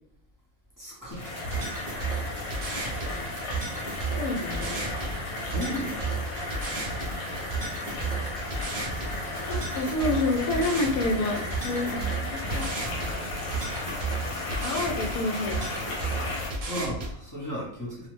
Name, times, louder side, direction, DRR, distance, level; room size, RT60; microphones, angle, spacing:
voice 1, 0.8-1.7 5.4-6.1 16.7-18.1, equal, 25° left, -7 dB, 0.4 m, -35 dB
sound 1, 1.1-16.5, left 2 dB, 65° left, 1.2 m, -34 dB
sound 2, 1.1-17.1, right 3 dB, 55° right, 0.4 m, -34 dB
voice 2, 4.1-4.9 9.5-12.7 14.6-15.6, left 2 dB, 85° left, 1 dB, 1.1 m, -28 dB
2.7 x 2.0 x 3.0 m, 0.77 s
omnidirectional pair, 1.5 m